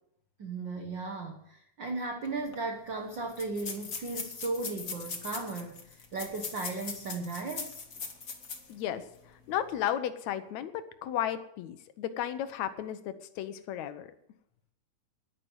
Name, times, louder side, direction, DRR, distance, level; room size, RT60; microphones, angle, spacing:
voice 1, 0.4-7.8, right 3 dB, 55° right, 1.3 m, -36 dB
sound 1, 2.2-2.3 2.5-2.6 3.3-8.7 9.1-9.2 9.7-9.9, left 5 dB, 40° left, 1.3 m, -40 dB
voice 2, 8.7-14.1, left 10 dB, 70° left, 2.1 m, -34 dB
11.0 x 10.5 x 8.0 m
omnidirectional pair, 3.7 m